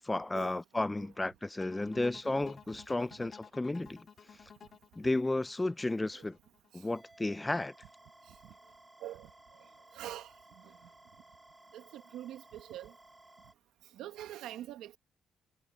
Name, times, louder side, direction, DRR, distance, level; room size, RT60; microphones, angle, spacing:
voice 1, 0.0-4.1 5.0-6.4 6.7-7.7, left 2 dB, 15° left, 0.5 m, -33 dB
sound 1, 1.6-6.7, left 7 dB, 50° left, 2.6 m, -53 dB
sound 2, 6.9-13.5, right 2 dB, 15° right, 2.7 m, -58 dB
voice 2, 9.9-10.3 10.6-10.8 11.7-12.9 13.9-15.0, right 12 dB, 90° right, 1.6 m, -44 dB
cardioid pair, 90°, 0 cm